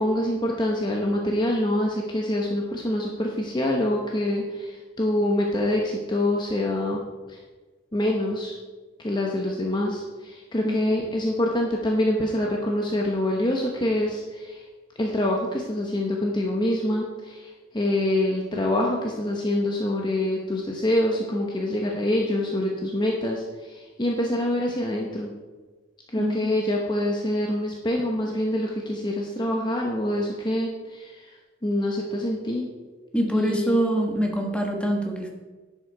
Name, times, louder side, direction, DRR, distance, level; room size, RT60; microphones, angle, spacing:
voice 1, 0.0-7.0 7.3-7.4 7.9-8.6 9.0-14.6 15.0-25.3 26.1-31.3 31.6-32.7 33.3-33.7, left 1 dB, 20° left, -1 dB, 0.9 m, -25 dB
voice 2, 33.1-35.3, right 1 dB, 5° left, 1 dB, 1.3 m, -24 dB
10.5 x 7.8 x 4.6 m, 1.3 s
head